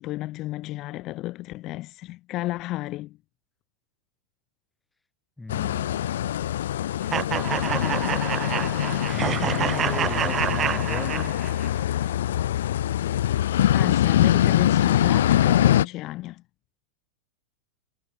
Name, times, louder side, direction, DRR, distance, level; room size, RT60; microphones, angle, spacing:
voice 1, 0.0-3.2 13.7-16.4, left 17 dB, 45° left, 1.2 m, -32 dB
voice 2, 5.4-6.1 9.1-11.4, left 2 dB, 10° left, 2.5 m, -37 dB
sound 1, 5.5-15.9, left 11 dB, 75° left, 0.4 m, -23 dB
sound 2, 7.1-11.7, right 9 dB, 30° right, 0.8 m, -28 dB
hypercardioid pair, 105°, 0 cm